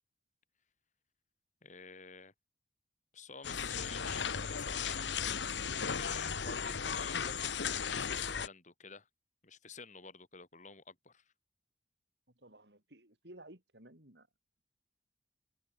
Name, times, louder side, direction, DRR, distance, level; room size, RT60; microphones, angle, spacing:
voice 1, 1.6-2.3 3.1-5.5 5.7-9.1 9.4-11.3, left 5 dB, 45° left, 4.4 m, -51 dB
sound 1, 3.4-8.5, left 6 dB, 80° left, 1.1 m, -36 dB
voice 2, 12.4-14.3, right 1 dB, 65° right, 6.7 m, -55 dB
head